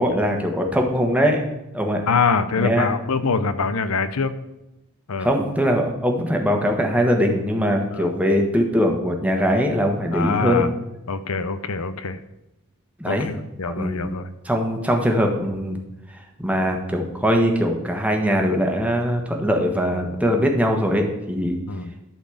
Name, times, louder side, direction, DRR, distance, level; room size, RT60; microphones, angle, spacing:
voice 1, 0.0-1.4 1.7-2.0 2.6-2.9 5.2-10.7 13.0-13.3 13.8-14.1 14.4-15.8 16.4-21.6, equal, 5° right, 2 dB, 1.3 m, -21 dB
voice 2, 2.1-4.4 5.1-5.3 7.9-8.1 10.1-10.7 11.1-12.2 13.0-14.3 21.7-21.9, left 4 dB, 85° left, 11 dB, 0.7 m, -24 dB
12.0 x 4.2 x 7.8 m, 0.91 s
head